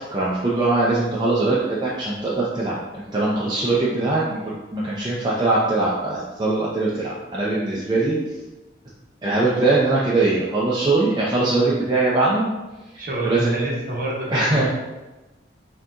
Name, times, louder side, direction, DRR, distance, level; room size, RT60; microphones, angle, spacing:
voice 1, 0.1-8.2 9.2-12.5 13.2-13.5 14.3-14.7, right 2 dB, 20° right, -7 dB, 0.5 m, -21 dB
voice 2, 13.0-14.7, right 1 dB, 45° right, -4 dB, 0.9 m, -27 dB
5.7 x 2.8 x 2.5 m, 1.1 s
head